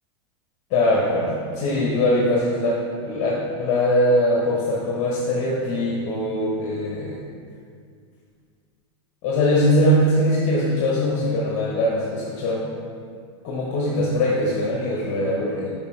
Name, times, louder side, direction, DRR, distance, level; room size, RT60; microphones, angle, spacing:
voice 1, 0.7-7.2 9.2-12.7 13.4-15.7, left 1 dB, 45° left, -4 dB, 1.1 m, -21 dB
6.7 x 5.0 x 3.3 m, 2.2 s
hypercardioid pair, 120°, 16 cm